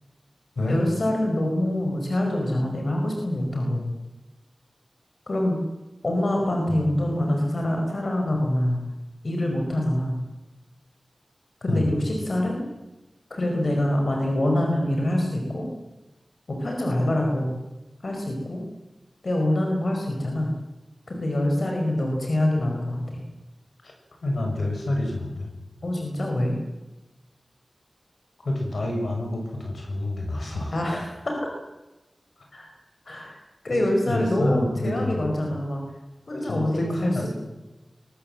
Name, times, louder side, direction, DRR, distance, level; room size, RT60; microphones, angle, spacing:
voice 1, 0.7-3.9 5.3-5.6 6.0-8.8 9.2-10.2 11.6-12.6 13.3-15.7 16.5-17.5 18.0-18.6 19.2-20.5 21.1-23.2 25.8-26.5 30.7-31.3 32.5-32.7 33.0-33.4 33.6-35.8 36.3-37.3, left 1 dB, 60° left, 1 dB, 4.9 m, -25 dB
voice 2, 24.2-25.5 28.4-30.9 33.7-33.8 34.1-35.3 36.3-37.3, left 1 dB, 80° left, 2 dB, 6.4 m, -28 dB
22.5 x 20.0 x 7.8 m, 1.1 s
wide cardioid pair, 75°, 0 cm